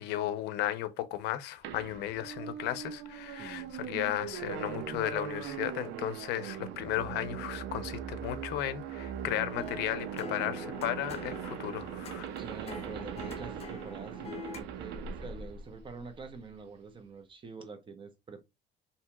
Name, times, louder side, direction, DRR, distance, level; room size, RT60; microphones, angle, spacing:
voice 1, 0.0-12.3, left 13 dB, 85° left, 0.5 m, -35 dB
sound 1, 1.6-16.4, right 9 dB, 85° right, 0.5 m, -40 dB
voice 2, 3.3-3.8 12.4-18.4, right 5 dB, 30° right, 0.7 m, -46 dB
sound 2, 9.0-14.6, left 3 dB, 35° left, 0.7 m, -45 dB
2.8 x 2.7 x 2.2 m
cardioid pair, 110°, 17 cm